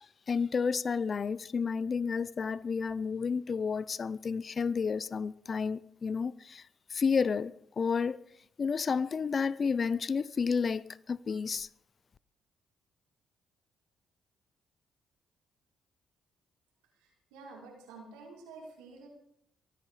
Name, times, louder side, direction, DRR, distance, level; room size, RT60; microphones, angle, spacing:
voice 1, 0.0-8.2 8.6-11.7, left 5 dB, 45° left, 0.6 m, -31 dB
voice 2, 17.3-19.1, right 3 dB, 85° right, 5.6 m, -49 dB
23.0 x 9.9 x 5.0 m
hypercardioid pair, 50°, 0 cm